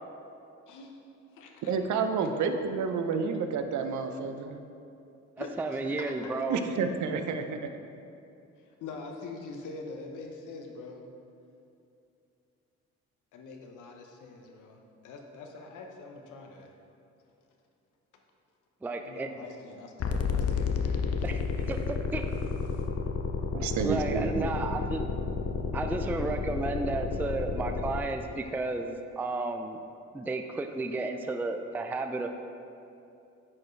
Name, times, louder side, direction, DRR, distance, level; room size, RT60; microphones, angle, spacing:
voice 1, 0.7-1.0 1.3-1.7 2.2-2.3 3.0-3.2 5.4-5.5 5.7-5.8 6.2-6.3 8.8-11.1 13.3-16.7 19.0-21.2 22.7-22.9, left 3 dB, 85° left, 3 dB, 0.9 m, -44 dB
voice 2, 1.6-4.6 6.5-7.7 23.5-24.5, right 5 dB, 70° right, 7 dB, 0.6 m, -30 dB
voice 3, 5.4-6.6 18.8-19.3 21.2-22.2 23.8-25.1 25.7-29.8 30.1-32.3, right 3 dB, 5° right, 6 dB, 0.3 m, -33 dB
sound 1, 20.0-28.0, left 5 dB, 55° left, 0.6 m, -31 dB
9.8 x 4.4 x 3.2 m, 2.6 s
cardioid pair, 90°, 30 cm